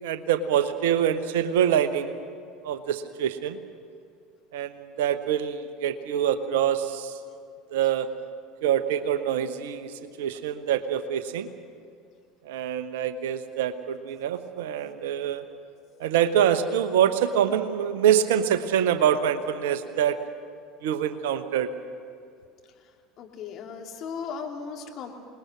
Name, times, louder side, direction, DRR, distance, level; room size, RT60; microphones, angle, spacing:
voice 1, 0.0-2.2 2.6-3.6 4.5-7.2 7.7-8.1 8.6-11.5 12.4-15.4 16.0-20.2 20.8-21.7, right 9 dB, 65° right, 10 dB, 1.1 m, -25 dB
voice 2, 23.2-25.1, left 6 dB, 45° left, 1 dB, 3.0 m, -36 dB
27.5 x 20.0 x 6.2 m, 2.3 s
figure-of-eight pair, 70°, 0 cm